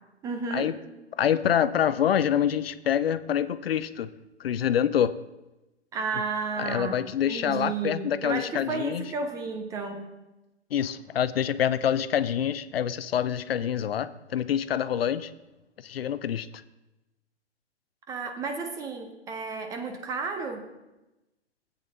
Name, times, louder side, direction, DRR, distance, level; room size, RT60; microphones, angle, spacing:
voice 1, 0.2-0.7 5.9-10.1 18.1-20.7, right 4 dB, 10° right, 6 dB, 0.5 m, -32 dB
voice 2, 1.1-4.1 4.4-5.2 6.6-9.1 10.7-15.3 15.8-16.5, left 9 dB, 60° left, 14 dB, 0.5 m, -26 dB
16.5 x 8.6 x 2.7 m, 1.0 s
figure-of-eight pair, 120°, 34 cm